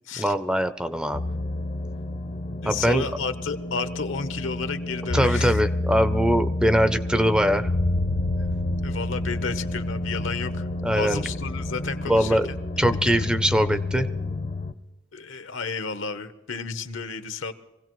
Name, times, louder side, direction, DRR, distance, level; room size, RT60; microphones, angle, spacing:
voice 1, 0.2-1.3 2.6-3.0 5.1-7.7 10.8-11.2 12.1-12.5 12.8-14.1, equal, 5° right, 11 dB, 0.5 m, -22 dB
sound 1, 1.1-14.7, left 2 dB, 40° left, 0.6 m, -29 dB
voice 2, 2.6-5.6 8.8-10.7 10.9-12.6 15.1-17.5, left 5 dB, 80° left, 10 dB, 0.9 m, -32 dB
24.5 x 16.5 x 3.1 m, 1.1 s
head